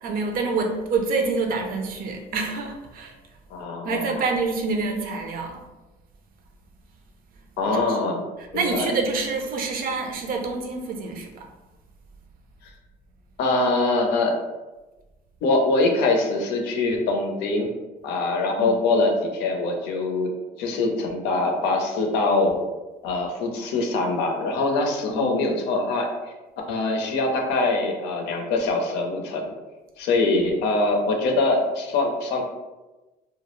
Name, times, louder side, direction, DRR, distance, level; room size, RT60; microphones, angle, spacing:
voice 1, 0.0-3.1 3.8-5.6 7.7-8.0 8.4-11.5 18.6-19.0 25.1-25.4, right 4 dB, 60° right, 3 dB, 0.5 m, -27 dB
voice 2, 3.5-4.3 7.6-8.2 8.5-8.9 13.4-14.4 15.4-17.7 18.0-20.3 20.6-22.6 23.0-26.1 26.7-29.4 30.0-32.5, left 2 dB, 85° left, 2 dB, 0.5 m, -23 dB
2.2 x 2.0 x 2.9 m, 1.1 s
cardioid pair, 110°, 17 cm